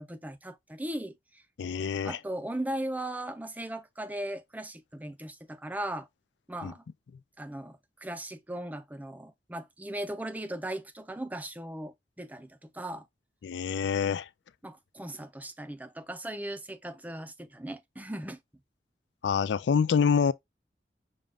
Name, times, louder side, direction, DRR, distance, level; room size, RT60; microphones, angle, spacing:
voice 1, 0.0-1.4 2.0-6.1 6.5-6.8 7.4-13.1 14.6-18.4, right 1 dB, 10° right, 0.4 m, -38 dB
voice 2, 1.6-2.2 6.6-6.7 13.4-14.3 19.2-20.3, left 6 dB, 85° left, 0.4 m, -26 dB
6.4 x 2.3 x 3.5 m
head